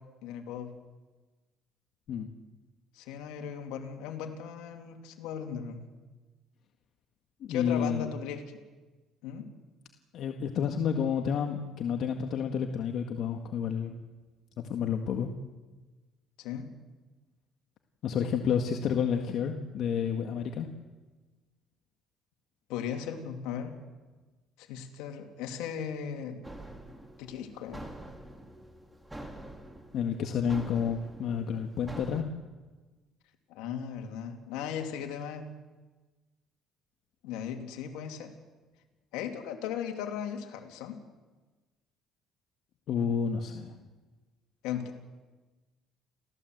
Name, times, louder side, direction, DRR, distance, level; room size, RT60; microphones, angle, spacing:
voice 1, 0.2-0.7 2.9-5.8 7.5-8.4 9.2-9.4 16.4-16.7 22.7-23.7 24.6-26.5 27.2-27.9 33.5-35.5 37.2-38.3 39.1-41.0 44.6-45.0, left 8 dB, 85° left, 4 dB, 3.0 m, -37 dB
voice 2, 7.4-8.1 10.1-13.9 14.7-15.3 18.0-20.7 29.9-32.2 42.9-43.7, left 7 dB, 65° left, 4 dB, 1.7 m, -30 dB
sound 1, 26.4-32.2, right 1 dB, 10° right, 3.7 m, -46 dB
29.5 x 15.0 x 8.0 m, 1.3 s
cardioid pair, 100°, 0 cm